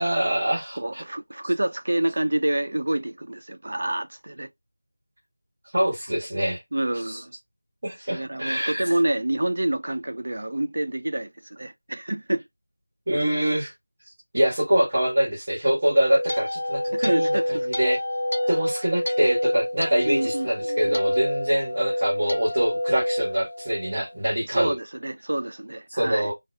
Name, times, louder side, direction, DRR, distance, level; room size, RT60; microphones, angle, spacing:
voice 1, 0.0-1.0 5.7-6.6 7.1-7.2 7.8-8.9 13.1-13.7 14.3-18.0 18.5-24.7 25.9-26.3, right 1 dB, 30° right, 1.2 m, -24 dB
voice 2, 0.7-4.5 6.7-7.3 8.1-12.4 16.9-17.7 20.1-21.0 24.4-26.3, right 1 dB, 55° right, 0.5 m, -27 dB
sound 1, 15.8-24.1, left 1 dB, 65° left, 0.4 m, -27 dB
2.6 x 2.3 x 3.2 m
figure-of-eight pair, 175°, 0 cm